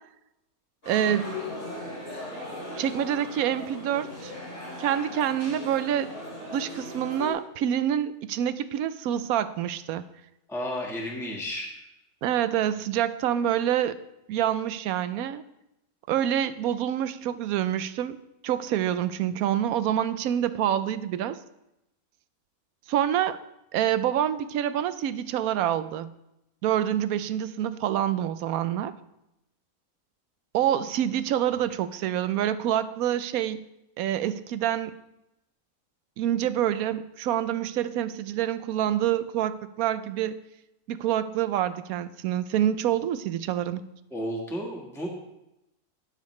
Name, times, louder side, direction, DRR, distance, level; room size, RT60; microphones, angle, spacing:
sound 1, 0.8-7.3, left 1 dB, 70° left, 5.3 m, -38 dB
voice 1, 0.9-1.3 2.8-4.3 4.8-6.1 6.5-10.0 12.2-14.0 14.3-15.4 16.1-18.2 18.4-21.4 22.9-23.4 23.7-26.1 26.6-28.9 30.5-33.6 34.0-34.9 36.2-40.4 40.9-43.8, right 10 dB, 85° right, 13 dB, 1.1 m, -27 dB
voice 2, 10.5-11.8 44.1-45.1, equal, ahead, -2 dB, 1.5 m, -32 dB
17.0 x 6.7 x 3.2 m, 0.88 s
omnidirectional pair, 1.5 m